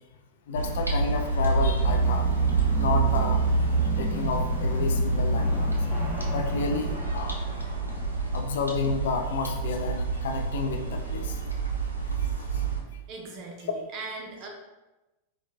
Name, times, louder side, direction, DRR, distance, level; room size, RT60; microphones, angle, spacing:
voice 1, 0.5-2.4 2.7-3.6 4.0-5.9 6.3-7.4 8.3-11.4 12.2-12.6, left 4 dB, 60° left, 4 dB, 0.3 m, -31 dB
sound 1, 0.5-12.8, right 3 dB, 85° right, 0.5 m, -27 dB
sound 2, 1.9-7.0, right 1 dB, 5° left, 1.0 m, -37 dB
sound 3, 5.3-11.4, left 1 dB, 35° left, 1.1 m, -44 dB
voice 2, 13.1-14.5, right 3 dB, 40° right, 0 dB, 0.7 m, -39 dB
4.3 x 2.3 x 2.3 m, 1.1 s
figure-of-eight pair, 90°, 0 cm